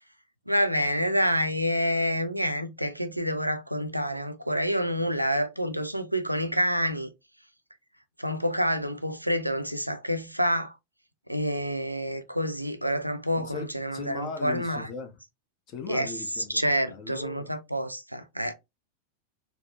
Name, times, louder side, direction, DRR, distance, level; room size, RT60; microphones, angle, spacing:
voice 1, 0.5-7.1 8.2-10.7 11.3-14.9 15.9-16.1 16.5-18.5, equal, 90° right, 0.4 m, -28 dB
voice 2, 13.4-15.2 15.7-17.5, left 5 dB, 35° left, 0.8 m, -39 dB
4.0 x 2.0 x 2.9 m
figure-of-eight pair, 90°, 0 cm